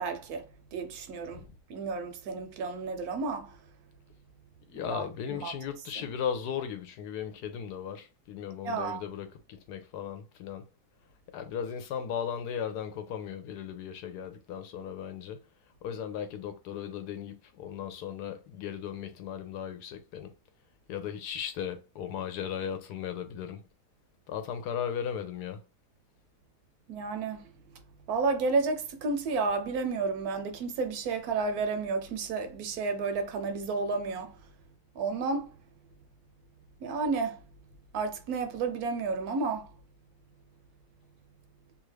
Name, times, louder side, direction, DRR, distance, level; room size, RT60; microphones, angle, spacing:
voice 1, 0.0-1.4 1.7-3.5 4.8-5.5 6.0-6.1 8.6-9.0 26.9-27.5 28.1-34.4 34.9-35.5 36.8-37.4 37.9-39.7, right 4 dB, 75° right, 1.0 m, -31 dB
voice 2, 4.7-10.6 11.3-15.4 15.8-20.3 20.9-23.6 24.3-25.6, left 8 dB, 80° left, 1.1 m, -36 dB
2.8 x 2.4 x 3.1 m
omnidirectional pair, 1.7 m